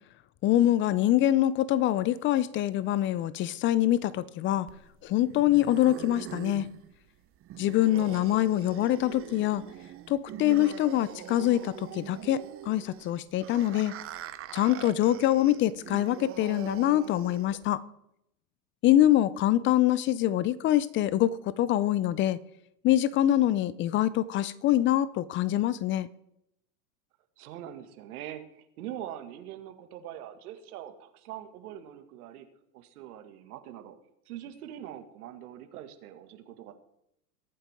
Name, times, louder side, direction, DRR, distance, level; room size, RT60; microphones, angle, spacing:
voice 1, 0.4-4.7 5.0-6.7 7.6-9.6 10.1-13.9 14.5-17.8 18.8-22.4 22.8-26.1, left 13 dB, 25° left, 0.5 m, -25 dB
sound 1, 4.7-17.7, right 11 dB, 30° right, 0.9 m, -43 dB
voice 2, 27.4-32.5 32.7-34.0 34.3-36.7, right 11 dB, 65° right, 2.1 m, -43 dB
21.5 x 8.9 x 3.6 m
hypercardioid pair, 115°, 47 cm